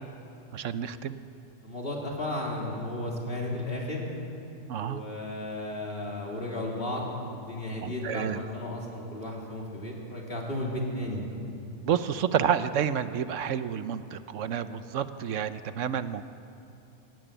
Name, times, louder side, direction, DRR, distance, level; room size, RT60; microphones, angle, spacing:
voice 1, 0.5-1.2 4.7-5.0 7.8-8.4 11.8-16.2, right 8 dB, 85° right, 12 dB, 1.1 m, -29 dB
voice 2, 1.6-4.1 4.8-11.2, left 1 dB, 50° left, -2 dB, 3.7 m, -34 dB
20.5 x 17.0 x 9.0 m, 2.7 s
omnidirectional pair, 1.2 m